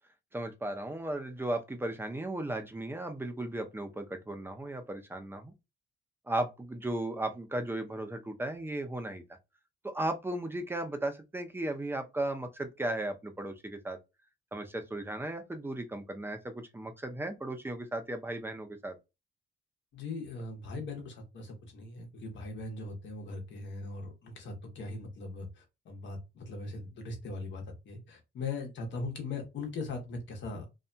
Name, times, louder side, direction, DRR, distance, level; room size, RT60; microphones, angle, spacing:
voice 1, 0.3-5.5 6.3-9.2 9.8-14.0 14.5-19.0, right 1 dB, 10° right, 0.6 m, -36 dB
voice 2, 19.9-30.7, left 3 dB, 70° left, 1.1 m, -40 dB
2.7 x 2.6 x 2.2 m
cardioid pair, 90°, 20 cm